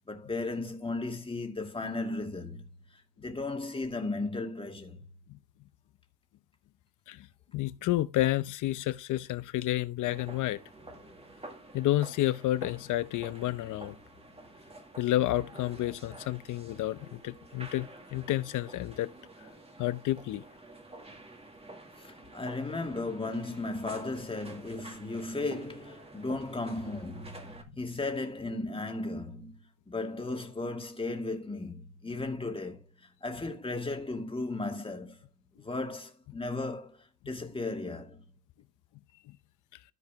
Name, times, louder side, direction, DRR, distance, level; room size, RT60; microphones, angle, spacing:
voice 1, 0.1-2.6 3.2-5.0 22.0-29.6 29.9-35.2 35.6-38.2, left 2 dB, 20° left, 2.3 m, -35 dB
voice 2, 7.5-10.6 11.7-13.9 15.0-19.1 19.8-20.4, left 15 dB, 80° left, 0.8 m, -30 dB
sound 1, 10.1-27.6, right 2 dB, 20° right, 2.2 m, -49 dB
13.5 x 4.9 x 3.6 m
cardioid pair, 90°, 30 cm